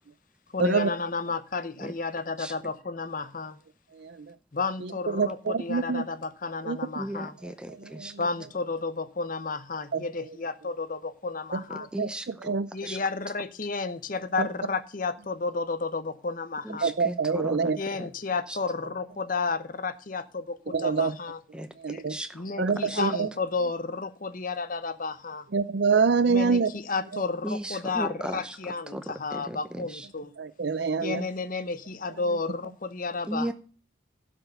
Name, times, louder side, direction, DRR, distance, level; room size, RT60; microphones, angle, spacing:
voice 1, 0.5-3.6 4.5-7.4 8.2-11.9 12.7-16.9 17.8-21.4 21.9-22.0 22.3-25.5 26.3-30.3 31.0-33.5, left 4 dB, 45° left, 0.8 m, -32 dB
voice 2, 5.1-6.0 6.7-6.8 8.0-8.1 9.9-10.0 12.0-12.1 12.5-12.7 16.8-17.8 20.7-21.1 21.8-22.1 22.6-23.3 25.5-26.7 30.4-31.2, right 5 dB, 60° right, 0.5 m, -25 dB
voice 3, 7.0-8.2 11.7-12.6 12.8-13.0 16.6-18.1 18.5-18.6 21.5-21.7 22.1-23.0 27.4-30.1 33.3-33.5, right 1 dB, 5° right, 0.7 m, -36 dB
12.0 x 6.1 x 6.8 m
head